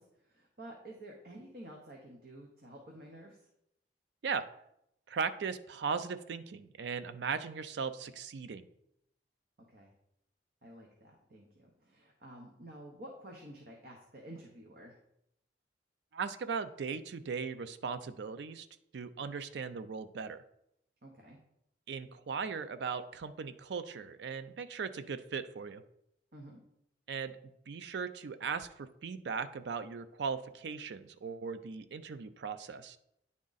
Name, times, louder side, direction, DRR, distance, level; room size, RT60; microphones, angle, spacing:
voice 1, 0.0-3.5 9.7-9.9 10.6-15.0 21.0-21.4 26.3-26.6, right 1 dB, 55° right, 0 dB, 0.9 m, -51 dB
voice 2, 5.1-8.7 16.1-18.7 18.9-20.4 21.9-25.8 27.1-27.4 27.7-33.0, right 5 dB, 75° right, 11 dB, 0.4 m, -38 dB
9.4 x 3.7 x 4.0 m, 0.78 s
head